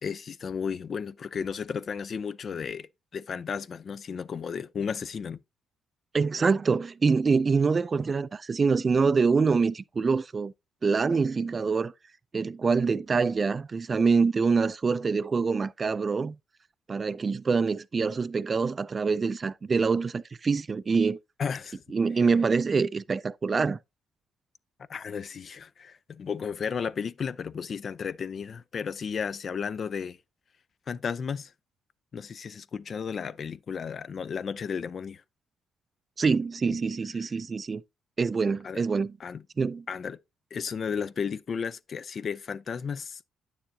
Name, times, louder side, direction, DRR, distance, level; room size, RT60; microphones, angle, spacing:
voice 1, 0.0-2.9 3.1-5.4 21.4-21.8 24.9-30.2 30.9-31.5 32.1-35.2 38.6-38.8 39.2-39.4 39.9-40.2 40.5-43.2, left 6 dB, 50° left, 0.4 m, -33 dB
voice 2, 6.1-10.5 10.8-11.9 12.3-16.4 16.9-21.2 21.9-23.8 36.2-37.8 38.2-39.1 39.6-39.8, right 5 dB, 35° right, 0.3 m, -25 dB
8.9 x 7.0 x 2.7 m
cardioid pair, 90°, 0 cm